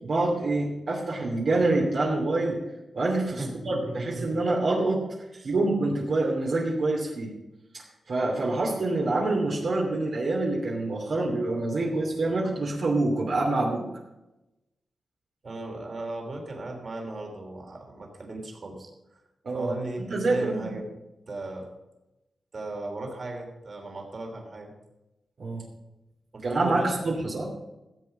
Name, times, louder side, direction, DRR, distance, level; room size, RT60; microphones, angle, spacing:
voice 1, 0.0-2.6 2.9-5.1 5.4-7.3 7.7-13.9 19.4-19.7 20.1-20.7 25.4-25.6 26.4-27.5, right 2 dB, 65° right, -2 dB, 2.7 m, -26 dB
voice 2, 3.4-4.4 5.3-5.5 15.4-19.2 19.5-20.9 21.3-21.7 22.5-24.7 26.3-27.2, right 2 dB, 45° right, 2 dB, 3.1 m, -37 dB
15.5 x 8.1 x 5.4 m, 0.97 s
wide cardioid pair, 105°, 0 cm